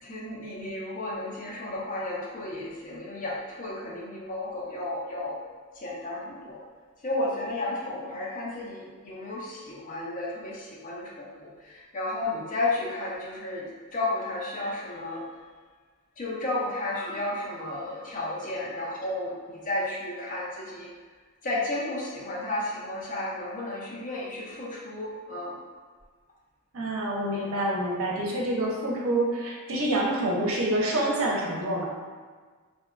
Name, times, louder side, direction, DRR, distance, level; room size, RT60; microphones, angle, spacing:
voice 1, 0.0-5.4 5.8-6.6 7.0-15.2 16.2-20.9 21.4-25.6, left 2 dB, 40° left, -4 dB, 0.5 m, -33 dB
voice 2, 26.7-31.9, right 1 dB, 75° right, -2 dB, 0.5 m, -27 dB
2.7 x 2.2 x 2.4 m, 1.5 s
head